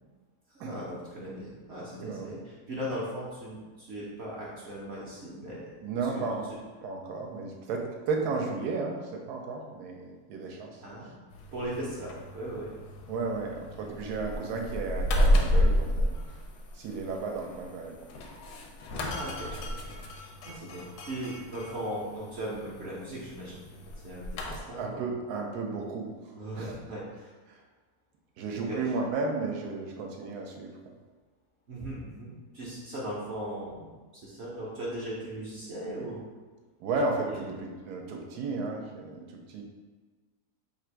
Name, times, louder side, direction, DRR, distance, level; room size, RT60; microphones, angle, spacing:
voice 1, 0.5-5.8 6.1-6.6 10.8-11.1 11.5-12.7 18.9-19.8 20.2-23.7 24.0-25.0 26.3-27.3 28.5-28.8 31.7-36.2 37.2-37.5, right 1 dB, 60° right, -6 dB, 0.7 m, -38 dB
voice 2, 5.8-6.5 6.8-10.8 13.1-16.1 16.7-18.0 24.8-26.1 26.6-26.8 27.5-27.6 28.4-30.7 36.8-39.6, right 3 dB, 75° right, 1 dB, 1.1 m, -33 dB
sound 1, 11.3-24.6, left 1 dB, 80° left, 1.1 m, -32 dB
3.3 x 2.5 x 4.4 m, 1.4 s
omnidirectional pair, 1.7 m